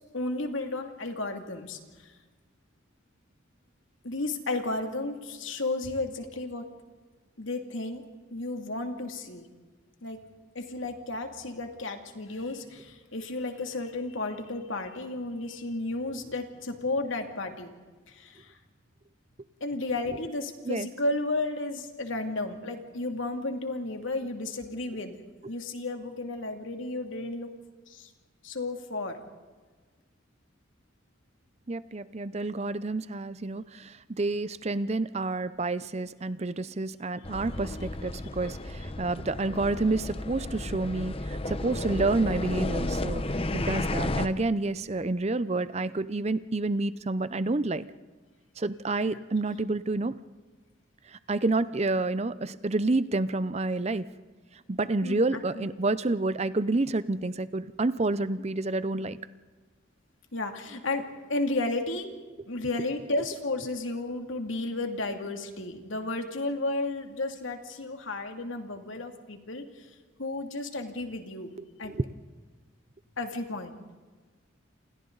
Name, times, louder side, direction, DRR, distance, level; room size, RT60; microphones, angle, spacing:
voice 1, 0.1-2.1 4.0-6.7 7.4-8.0 8.3-9.4 10.0-10.2 10.5-17.7 18.1-18.6 19.6-25.2 25.5-27.5 27.9-28.1 28.4-29.2 49.0-49.2 55.0-55.2 55.5-55.7 60.3-62.1 62.5-69.9 70.2-71.5 71.8-71.9 73.2-73.8, left 2 dB, 70° left, 5 dB, 2.6 m, -33 dB
voice 2, 31.7-47.9 48.6-50.2 51.1-54.1 54.7-59.2 71.8-72.0, right 2 dB, 30° right, 15 dB, 0.6 m, -29 dB
sound 1, 37.2-44.3, left 1 dB, 25° left, 0.9 m, -32 dB
29.0 x 28.0 x 4.0 m, 1.4 s
head